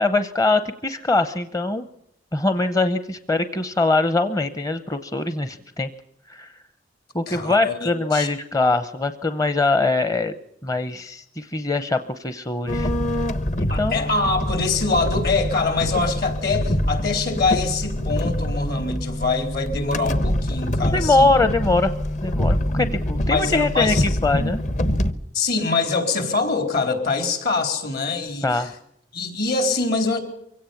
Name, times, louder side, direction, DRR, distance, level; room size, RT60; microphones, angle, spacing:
voice 1, 0.0-1.9 2.3-5.9 6.3-6.5 7.1-10.3 10.6-12.9 13.6-14.1 20.8-21.9 22.2-24.6 28.4-28.7, left 2 dB, 20° left, 11 dB, 0.7 m, -22 dB
voice 2, 7.3-8.3 13.7-21.3 23.3-24.0 25.3-28.7 29.1-30.2, left 3 dB, 60° left, 7 dB, 4.1 m, -24 dB
sound 1, 12.7-25.1, left 1 dB, 45° left, 1.1 m, -25 dB
24.0 x 17.0 x 7.1 m, 0.77 s
head